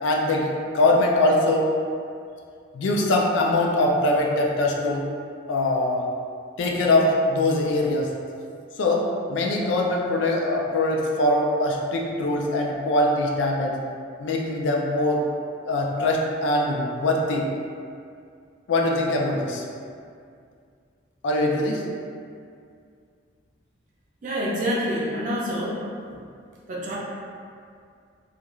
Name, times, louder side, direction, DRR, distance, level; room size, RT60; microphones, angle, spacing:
voice 1, 0.0-0.5 0.7-1.7 2.7-5.0 5.5-6.1 6.6-8.1 8.8-13.7 14.2-15.2 15.7-17.5 18.7-19.6 21.2-21.8, left 2 dB, 70° left, 0 dB, 0.4 m, -22 dB
voice 2, 24.2-26.2 26.7-27.0, equal, 40° right, -5 dB, 0.4 m, -27 dB
2.4 x 2.3 x 3.0 m, 2.3 s
head